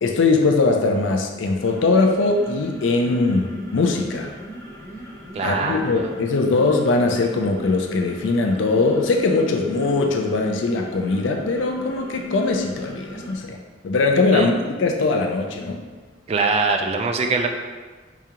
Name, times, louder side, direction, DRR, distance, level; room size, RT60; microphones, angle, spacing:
voice 1, 0.0-4.3 5.4-13.6 13.8-14.5 14.8-15.8, left 3 dB, 80° left, 3 dB, 0.4 m, -21 dB
sound 1, 1.5-13.5, right 1 dB, 15° left, 0.7 m, -39 dB
voice 2, 5.3-6.1 14.3-14.5 16.3-17.5, right 3 dB, 35° right, 3 dB, 0.3 m, -22 dB
4.9 x 2.4 x 2.8 m, 1.4 s
head